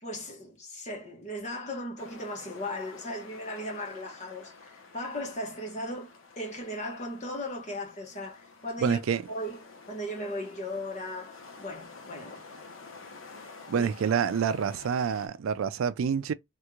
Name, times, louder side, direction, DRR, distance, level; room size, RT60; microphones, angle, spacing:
voice 1, 0.0-9.0 9.3-9.6 9.9-12.4 13.7-13.9, left 1 dB, 35° left, 1.1 m, -37 dB
sound 1, 2.0-15.3, left 4 dB, 85° left, 0.8 m, -50 dB
voice 2, 8.8-9.2 13.7-16.3, right 7 dB, 80° right, 0.3 m, -27 dB
3.3 x 3.0 x 2.3 m
head